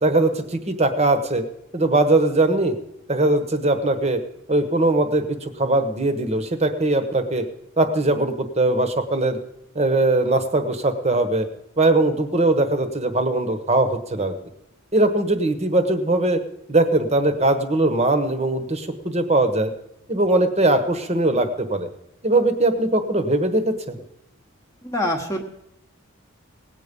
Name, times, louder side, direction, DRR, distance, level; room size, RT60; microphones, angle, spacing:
voice 1, 0.0-1.4 1.7-2.7 3.1-4.2 4.5-7.5 7.8-9.4 9.7-11.5 11.8-14.3 14.9-16.4 16.7-19.7 20.1-21.9 22.2-24.0, right 2 dB, 30° right, 9 dB, 1.2 m, -20 dB
voice 2, 24.8-25.4, left 1 dB, 15° left, 1 dB, 1.1 m, -24 dB
18.5 x 8.4 x 5.3 m, 0.81 s
head